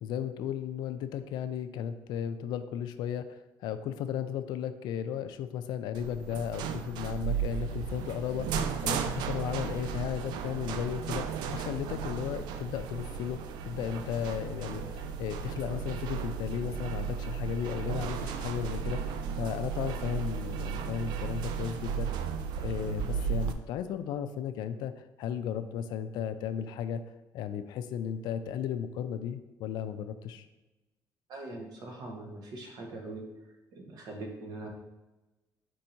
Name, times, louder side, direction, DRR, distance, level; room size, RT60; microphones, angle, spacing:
voice 1, 0.0-13.4 13.7-19.0 19.4-22.1 22.6-27.0 27.3-30.5, left 9 dB, 80° left, 10 dB, 0.3 m, -35 dB
sound 1, 5.9-23.5, right 7 dB, 85° right, 0.4 m, -35 dB
voice 2, 31.3-33.3 33.7-34.7, right 2 dB, 65° right, 1 dB, 1.0 m, -42 dB
4.5 x 2.7 x 4.3 m, 1.1 s
cardioid pair, 140°, 7 cm